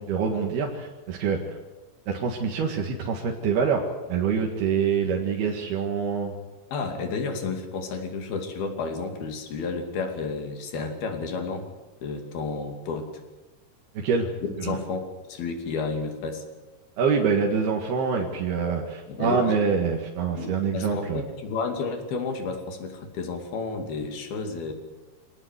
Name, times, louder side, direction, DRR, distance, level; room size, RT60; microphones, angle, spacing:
voice 1, 0.0-1.6 2.1-6.3 14.0-14.3 14.6-14.8 17.0-21.2, right 5 dB, 85° right, 1 dB, 3.9 m, -25 dB
voice 2, 6.7-11.7 12.0-13.2 14.6-16.4 19.1-19.6 20.4-24.7, left 4 dB, 75° left, 5 dB, 4.6 m, -31 dB
25.0 x 18.0 x 8.2 m, 1.1 s
omnidirectional pair, 4.4 m